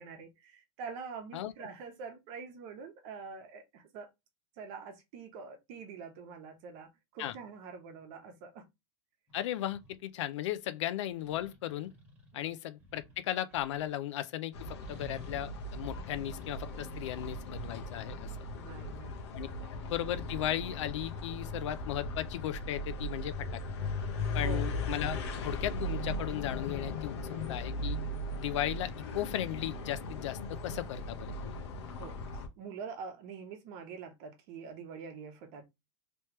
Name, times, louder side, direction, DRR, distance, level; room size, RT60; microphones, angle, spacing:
voice 1, 0.0-4.1 4.6-8.7 12.3-12.5 16.7-16.9 18.5-19.2 19.6-19.8 24.4-24.9 27.3-27.6 32.0-35.6, right 5 dB, 45° right, 1.1 m, -45 dB
voice 2, 9.3-11.9 12.3-14.5 14.9-18.3 19.3-19.5 19.9-23.6 24.3-27.2 27.5-28.0 28.4-31.6, left 12 dB, 85° left, 0.5 m, -36 dB
sound 1, 9.3-10.0 11.2-13.9 14.8-18.0, equal, 10° right, 1.5 m, -54 dB
sound 2, 14.5-32.5, left 2 dB, 65° left, 0.9 m, -38 dB
3.2 x 3.1 x 2.9 m
supercardioid pair, 165°, 15 cm